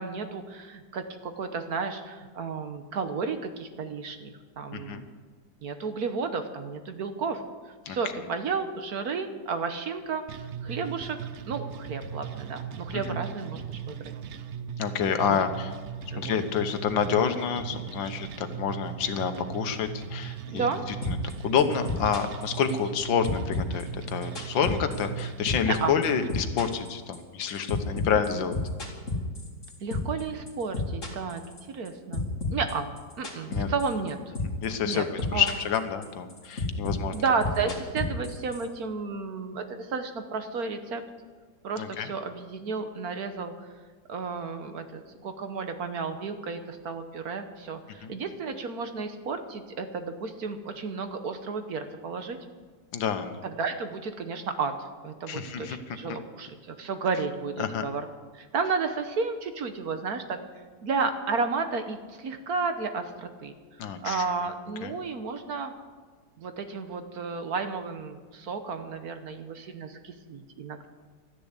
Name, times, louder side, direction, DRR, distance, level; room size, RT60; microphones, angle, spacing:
voice 1, 0.0-5.0 5.6-7.4 7.9-10.2 10.6-11.2 11.5-14.0 15.3-15.4 16.1-16.4 20.5-20.8 25.6-25.9 29.8-31.4 31.7-32.2 32.5-32.9 33.2-34.2 34.8-35.0 35.3-35.5 37.1-41.0 41.6-43.5 44.1-52.4 53.4-58.0 58.3-60.4 60.8-63.5 63.8-65.7 66.4-70.9, right 4 dB, 55° right, 8 dB, 1.4 m, -32 dB
voice 2, 4.7-5.0 7.9-8.0 12.9-13.2 14.8-15.7 16.2-20.7 21.0-21.2 21.4-28.6 33.5-33.7 34.6-37.1 41.8-42.1 48.0-48.1 52.9-53.4 55.3-56.2 57.6-57.8 63.8-64.3 64.8-64.9, left 7 dB, 80° left, 8 dB, 1.8 m, -28 dB
sound 1, 10.3-26.3, right 8 dB, 85° right, 0.6 m, -38 dB
sound 2, 21.0-21.3 21.6-23.0 23.2-25.2 25.5-25.8 26.0-30.2 30.5-34.1 34.4-34.7 34.9-35.8 36.0-38.6, left 3 dB, 40° left, 2.9 m, -31 dB
13.0 x 10.5 x 8.2 m, 1.5 s
omnidirectional pair, 2.0 m